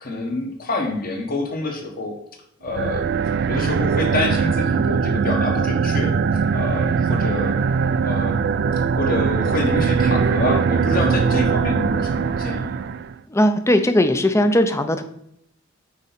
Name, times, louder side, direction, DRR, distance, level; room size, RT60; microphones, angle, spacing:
voice 1, 0.0-2.2 2.6-3.1 3.5-6.2 6.5-7.6 8.0-8.5 9.0-12.7, left 2 dB, 45° left, 2 dB, 1.4 m, -27 dB
sound 1, 2.7-13.1, right 5 dB, 55° right, 0.3 m, -21 dB
voice 2, 13.3-15.0, left 1 dB, 15° left, 9 dB, 0.5 m, -18 dB
8.8 x 4.1 x 4.2 m, 0.74 s
head